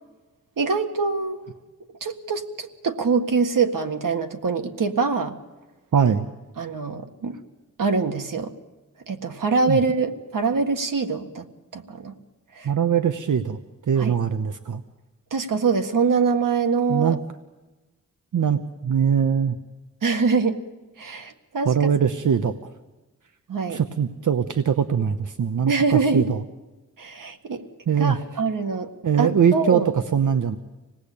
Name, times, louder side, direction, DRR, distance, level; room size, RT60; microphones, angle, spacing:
voice 1, 0.6-1.4 2.0-5.3 6.6-7.4 7.8-8.5 9.1-11.5 11.7-12.1 12.6-12.7 14.0-14.1 15.3-17.2 20.0-20.6 21.0-21.9 23.5-23.8 25.7-26.3 27.0-27.6 28.0-28.9 29.2-29.9, right 4 dB, 90° right, 6 dB, 1.8 m, -24 dB
voice 2, 5.9-6.3 9.7-9.8 12.6-13.6 13.9-14.8 16.9-17.2 18.3-19.6 21.6-22.6 23.7-26.4 27.9-28.2 29.0-30.6, right 7 dB, 70° right, 9 dB, 0.9 m, -22 dB
26.5 x 19.0 x 8.6 m, 1.1 s
wide cardioid pair, 125°, 32 cm